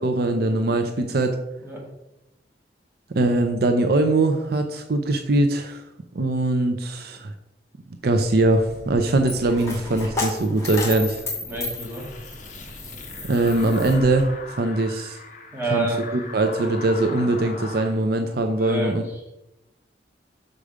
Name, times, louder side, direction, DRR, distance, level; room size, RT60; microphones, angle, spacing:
voice 1, 0.0-1.4 3.1-5.8 6.1-7.3 8.0-11.2 13.3-14.3 14.6-15.2 15.7-15.9 16.3-19.0, right 2 dB, 60° right, 6 dB, 0.6 m, -21 dB
Coin (dropping), 8.2-14.2, left 2 dB, 15° left, 2.2 m, -33 dB
voice 2, 11.4-12.1 15.5-16.0 18.6-19.3, right 2 dB, 15° right, -3 dB, 2.1 m, -28 dB
sound 1, 11.5-17.9, left 3 dB, 45° left, 1.0 m, -40 dB
6.8 x 5.0 x 5.0 m, 0.93 s
head